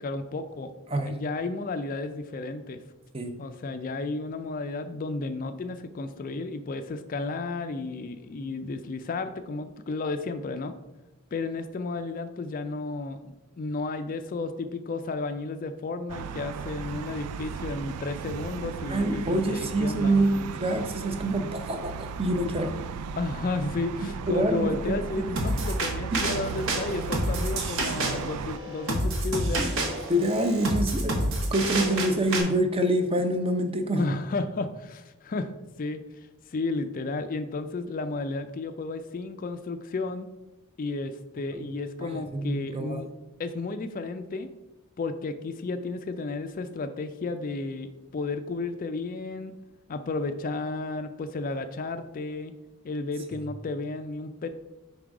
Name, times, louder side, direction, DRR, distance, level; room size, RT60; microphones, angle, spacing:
voice 1, 0.0-0.7 1.1-2.8 3.4-10.7 11.3-20.2 23.2-29.9 34.0-35.5 35.8-36.0 36.5-40.3 40.8-43.1 43.4-44.5 45.0-49.5 49.9-52.5 52.8-54.5, left 3 dB, 40° left, 9 dB, 0.3 m, -33 dB
sound 1, 16.1-28.6, right 7 dB, 85° right, 0.3 m, -36 dB
voice 2, 18.9-22.7 24.3-25.2 26.1-26.2 29.5-29.7 30.1-31.2 31.5-34.1 41.5-41.7 42.1-43.0, right 1 dB, 25° right, 6 dB, 0.6 m, -26 dB
sound 2, 25.4-32.4, right 1 dB, 65° right, 1.1 m, -29 dB
5.4 x 3.8 x 4.7 m, 1.0 s
head